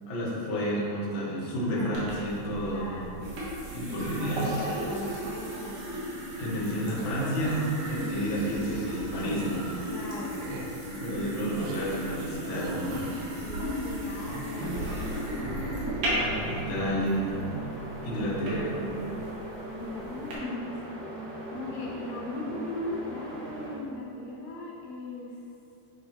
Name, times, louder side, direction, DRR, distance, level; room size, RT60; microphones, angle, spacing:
voice 1, 0.1-3.1 3.7-4.7 6.4-9.7 11.0-13.0 16.2-17.5 18.0-19.0, right 1 dB, 55° left, -7 dB, 1.4 m, -31 dB
sound 1, 1.9-20.3, equal, 75° right, 3.0 m, -35 dB
voice 2, 2.7-3.1 4.2-5.9 9.9-10.4 10.9-11.1 13.4-15.2 19.8-21.0 21.5-25.4, left 2 dB, 85° left, -4 dB, 3.1 m, -38 dB
sound 2, 9.1-9.6 10.4-10.7 11.5-11.8 12.6-13.3 14.0-14.7 15.3-16.0 16.3-16.7, right 5 dB, 90° right, 1.8 m, -41 dB
sound 3, 14.5-23.8, equal, 55° right, 2.7 m, -39 dB
10.5 x 4.3 x 3.0 m, 2.7 s
omnidirectional pair, 4.4 m